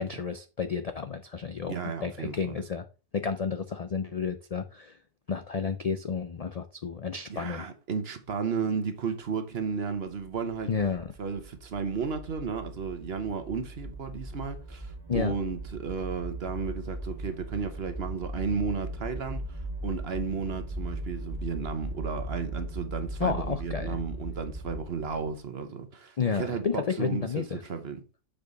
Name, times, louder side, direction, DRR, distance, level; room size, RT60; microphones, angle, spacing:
voice 1, 0.0-1.8 2.0-2.8 3.1-5.0 5.3-7.6 10.7-11.1 15.1-15.3 23.2-24.0 26.2-27.6, left 5 dB, 55° left, 0.4 m, -31 dB
voice 2, 1.7-2.6 7.3-10.7 11.2-28.0, right 5 dB, 55° right, 1.2 m, -33 dB
sound 1, 10.1-25.4, right 1 dB, 25° right, 0.6 m, -38 dB
7.2 x 5.0 x 3.9 m
omnidirectional pair, 1.3 m